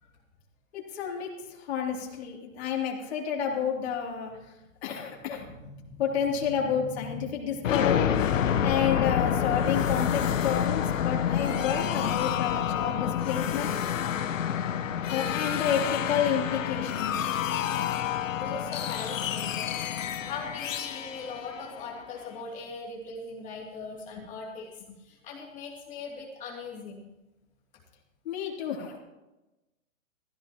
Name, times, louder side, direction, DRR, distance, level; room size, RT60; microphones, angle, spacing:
voice 1, 0.7-1.3 1.6-4.3 4.8-5.5 6.0-8.1 8.6-13.7 15.1-17.8 28.2-29.0, left 7 dB, 50° left, -2 dB, 3.1 m, -30 dB
voice 2, 5.5-6.0 6.7-7.7 18.3-19.8 20.2-27.0, left 4 dB, 20° left, -3 dB, 2.9 m, -40 dB
sound 1, 7.6-22.3, left 9 dB, 70° left, 1.1 m, -28 dB
16.0 x 15.0 x 3.0 m, 1.0 s
hypercardioid pair, 155°, 40 cm